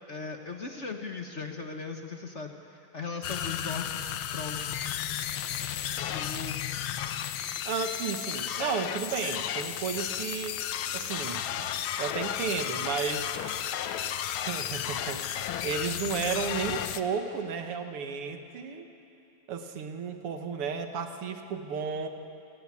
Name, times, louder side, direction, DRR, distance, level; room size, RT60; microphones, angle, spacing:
voice 1, 0.1-2.6 2.9-4.8 6.1-6.6, left 4 dB, 40° left, 4 dB, 1.2 m, -38 dB
sound 1, 3.2-17.0, left 10 dB, 75° left, 1.6 m, -33 dB
voice 2, 7.7-10.6 10.9-11.7 12.0-13.3 14.5-18.9 19.5-22.1, right 5 dB, 85° right, 6 dB, 2.3 m, -33 dB
29.0 x 17.0 x 8.4 m, 2.8 s
omnidirectional pair, 2.4 m